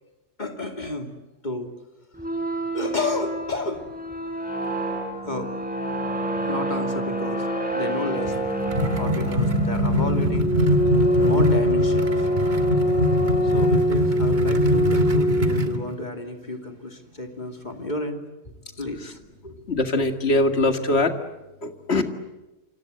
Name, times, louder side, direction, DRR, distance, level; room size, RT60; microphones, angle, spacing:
voice 1, 0.4-1.1 1.4-1.7 2.7-3.8 5.2-5.5 6.4-8.5 9.0-10.5 11.2-12.3 13.4-18.2 18.8-19.7, left 2 dB, 35° left, 5 dB, 2.9 m, -31 dB
sound 1, 2.2-15.9, equal, 5° right, 6.2 m, -25 dB
sound 2, 8.2-15.8, equal, 40° right, 1.9 m, -23 dB
voice 2, 19.7-21.1 21.6-22.0, left 2 dB, 60° left, 7 dB, 2.3 m, -22 dB
28.5 x 25.0 x 7.9 m, 1.0 s
omnidirectional pair, 1.2 m